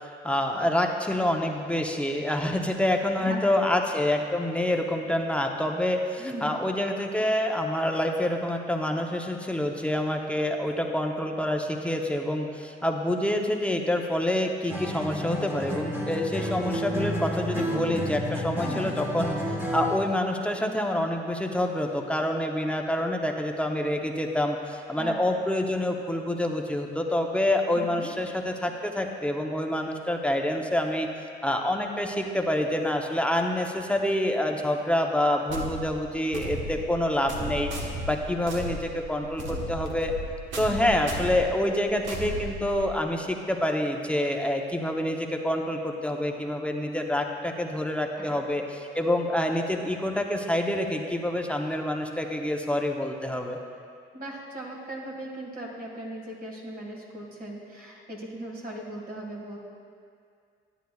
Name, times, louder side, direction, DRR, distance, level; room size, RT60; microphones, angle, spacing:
voice 1, 0.2-19.4 19.7-31.1 31.4-40.1 40.6-53.6, left 1 dB, 5° left, 2 dB, 0.7 m, -27 dB
voice 2, 6.2-6.5 18.6-18.9 25.0-25.2 27.7-28.1 40.7-40.8 48.2-48.4 54.1-59.6, right 1 dB, 50° right, -2 dB, 1.8 m, -38 dB
Acoustic guitar, 14.7-20.1, equal, 10° right, 1.3 m, -31 dB
sound 1, 35.5-43.1, right 1 dB, 70° right, 1.2 m, -35 dB
12.5 x 9.0 x 2.3 m, 2.3 s
cardioid pair, 90°, 20 cm